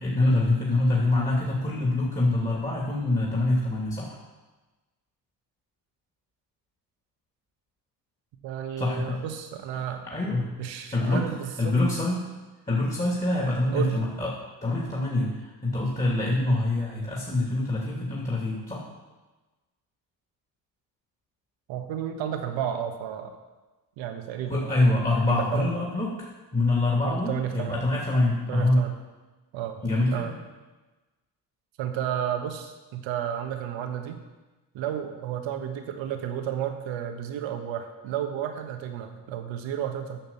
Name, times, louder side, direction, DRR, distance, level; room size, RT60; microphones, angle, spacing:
voice 1, 0.0-4.2 8.8-9.2 9.7-10.5 10.9-11.2 11.6-12.2 12.7-14.3 14.6-18.8 24.5-28.8 29.8-30.3, left 2 dB, 15° left, -4 dB, 2.8 m, -25 dB
voice 2, 8.4-10.0 10.6-11.7 13.7-14.0 21.7-23.3 24.0-24.7 25.2-25.7 27.0-27.8 28.5-28.9 29.5-29.8 30.1-30.3 31.8-34.2 34.7-40.2, right 9 dB, 70° right, 5 dB, 1.5 m, -32 dB
9.0 x 5.9 x 7.3 m, 1.2 s
hypercardioid pair, 60°, 47 cm